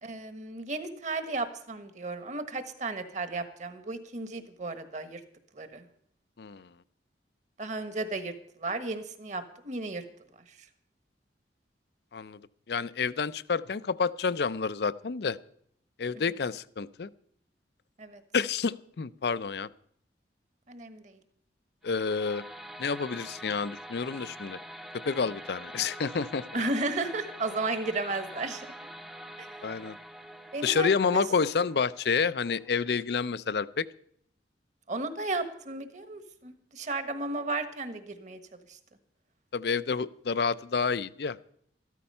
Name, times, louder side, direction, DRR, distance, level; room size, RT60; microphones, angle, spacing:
voice 1, 0.0-5.2 5.5-5.8 7.6-10.0 10.5-10.6 16.1-16.2 18.0-18.2 20.7-21.2 26.5-28.7 29.4-29.5 30.5-31.2 34.9-38.4 38.7-38.8, right 3 dB, 45° right, 10 dB, 1.3 m, -34 dB
voice 2, 6.4-6.7 12.1-12.4 12.7-15.4 16.0-17.1 18.3-19.7 21.8-22.4 22.8-24.6 25.0-26.4 29.6-30.0 30.6-33.9 39.5-41.4, left 5 dB, 65° left, 15 dB, 0.5 m, -29 dB
sound 1, 21.8-32.9, equal, 5° right, 0.6 m, -45 dB
13.5 x 13.0 x 5.5 m, 0.67 s
head